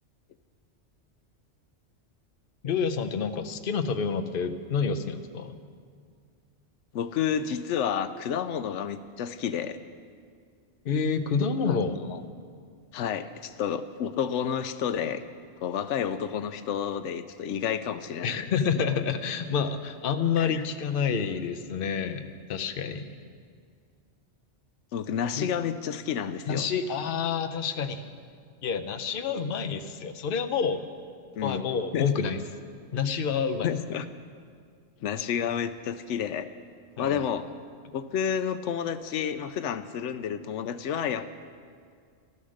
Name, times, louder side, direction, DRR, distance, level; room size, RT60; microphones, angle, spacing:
voice 1, 2.6-5.6 10.8-12.0 18.2-23.1 25.4-25.5 26.5-28.0 28.6-30.8 31.4-32.4 32.9-33.7 37.0-37.2, left 6 dB, 55° left, 7 dB, 0.9 m, -28 dB
voice 2, 6.9-9.8 11.7-12.2 12.9-15.2 15.6-18.4 20.4-20.6 24.9-26.7 31.4-31.6 31.9-32.1 33.6-34.1 35.0-36.5 37.0-37.5 37.9-41.3, left 8 dB, 85° left, 11 dB, 0.9 m, -30 dB
14.0 x 13.0 x 6.4 m, 2.1 s
omnidirectional pair, 1.2 m